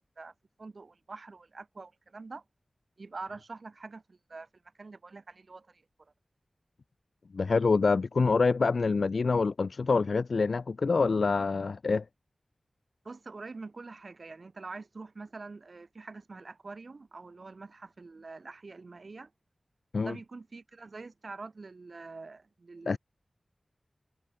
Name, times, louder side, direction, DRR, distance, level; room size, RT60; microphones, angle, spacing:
voice 1, 0.6-2.4 3.0-4.5 4.8-5.7 13.0-19.3 20.0-23.0, right 3 dB, 65° right, 2.7 m, -45 dB
voice 2, 7.3-12.0 19.9-20.2 22.9-23.0, left 4 dB, 85° left, 0.5 m, -26 dB
wide cardioid pair, 75°, 0 cm